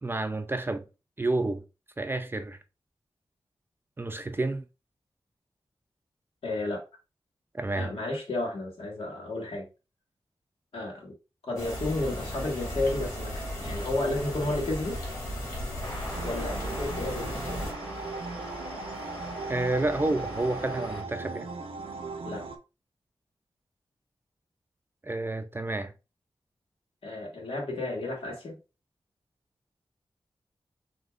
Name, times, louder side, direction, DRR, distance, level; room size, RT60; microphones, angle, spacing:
voice 1, 0.0-0.9 1.2-1.6 2.0-2.6 4.0-4.6 7.5-7.9 19.5-21.5 25.0-25.9, right 2 dB, 25° right, 0.4 m, -29 dB
voice 2, 6.4-6.8 7.7-9.7 10.7-11.1 11.4-15.0 16.2-17.7 22.2-22.4 27.0-28.5, left 2 dB, 85° left, 1.6 m, -32 dB
sound 1, 11.6-17.7, equal, 30° left, 2.3 m, -35 dB
sound 2, 15.8-21.0, equal, 50° left, 2.6 m, -40 dB
sound 3, 16.1-22.6, right 4 dB, 80° right, 0.7 m, -38 dB
6.3 x 2.9 x 2.4 m
wide cardioid pair, 130°, 9 cm